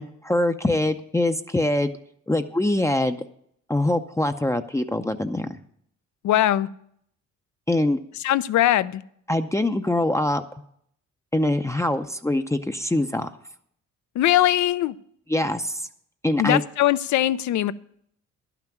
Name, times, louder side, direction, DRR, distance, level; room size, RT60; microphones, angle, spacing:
voice 1, 0.0-1.9 2.3-3.2 3.7-5.5 7.7-8.0 9.3-10.4 11.3-13.3 15.3-15.8 16.2-16.6, left 1 dB, 10° left, 7 dB, 0.6 m, -23 dB
voice 2, 6.2-6.7 8.2-9.0 14.2-14.9 16.4-17.7, left 13 dB, 70° left, 16 dB, 0.6 m, -21 dB
11.5 x 6.0 x 9.1 m, 0.68 s
cardioid pair, 90°, 30 cm